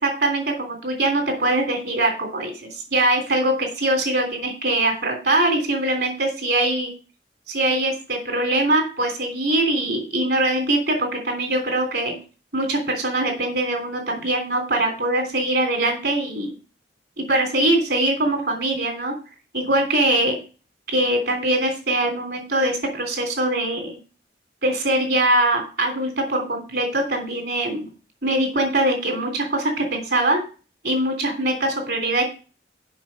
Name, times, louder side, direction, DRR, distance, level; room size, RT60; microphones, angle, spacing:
voice 1, 0.0-6.9 7.5-12.1 12.5-16.5 17.3-19.1 19.5-20.4 20.9-24.0 24.6-27.9 28.2-30.4 30.8-32.2, right 1 dB, 60° right, 3 dB, 3.3 m, -22 dB
7.2 x 6.1 x 7.4 m, 0.36 s
head